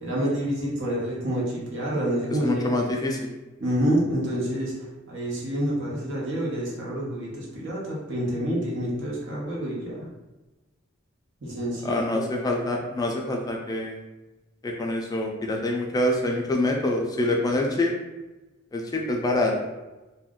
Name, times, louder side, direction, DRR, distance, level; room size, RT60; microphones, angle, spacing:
voice 1, 0.0-2.7 3.6-10.1 11.4-12.3, equal, 65° right, -5 dB, 0.9 m, -28 dB
voice 2, 2.4-3.2 11.8-14.0 14.6-17.9 18.7-19.5, left 1 dB, 20° left, 1 dB, 0.3 m, -25 dB
2.4 x 2.1 x 3.6 m, 1.1 s
head